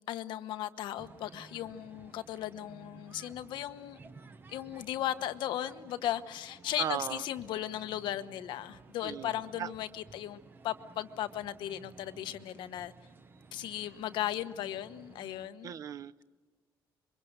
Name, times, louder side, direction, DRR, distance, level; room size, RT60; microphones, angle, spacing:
voice 1, 0.0-4.0 4.5-10.4 10.6-12.9 13.5-15.7, left 12 dB, 80° left, 11 dB, 1.2 m, -36 dB
sound 1, 0.9-15.5, right 3 dB, 25° right, 1.2 m, -55 dB
voice 2, 6.8-7.2 9.0-9.7 15.6-16.2, right 9 dB, 45° right, 16 dB, 0.7 m, -37 dB
27.5 x 24.0 x 6.6 m, 1.4 s
cardioid pair, 155°, 8 cm